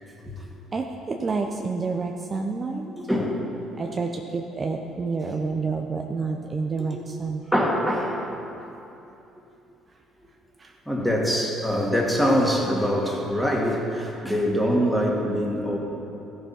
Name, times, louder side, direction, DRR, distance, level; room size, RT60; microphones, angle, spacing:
voice 1, 0.7-2.9 3.8-7.4 10.6-10.7, right 4 dB, 35° right, 2 dB, 0.7 m, -29 dB
voice 2, 3.1-3.4 7.5-8.2 10.9-15.8, equal, ahead, -1 dB, 2.1 m, -23 dB
14.5 x 7.1 x 4.4 m, 2.9 s
hypercardioid pair, 60°, 0 cm